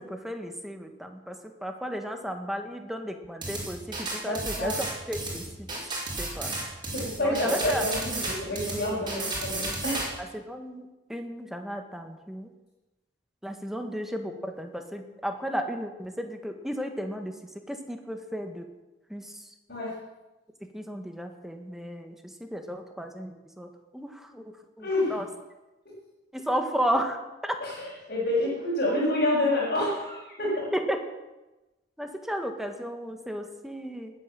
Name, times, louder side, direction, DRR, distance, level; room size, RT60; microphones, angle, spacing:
voice 1, 0.0-4.7 5.1-5.7 6.2-6.5 7.2-7.9 8.7-9.0 10.3-12.5 13.4-17.4 17.7-18.7 19.1-19.3 20.7-23.7 23.9-25.2 26.3-27.5 30.7-31.0 32.0-34.1, equal, ahead, 5 dB, 1.6 m, -34 dB
sound 1, 3.4-10.1, right 2 dB, 25° right, 5.6 m, -33 dB
voice 2, 4.2-4.8 6.9-10.1 19.7-19.9 24.8-25.1 27.6-30.7, left 1 dB, 50° left, -7 dB, 5.9 m, -28 dB
19.5 x 9.0 x 7.6 m, 1.1 s
head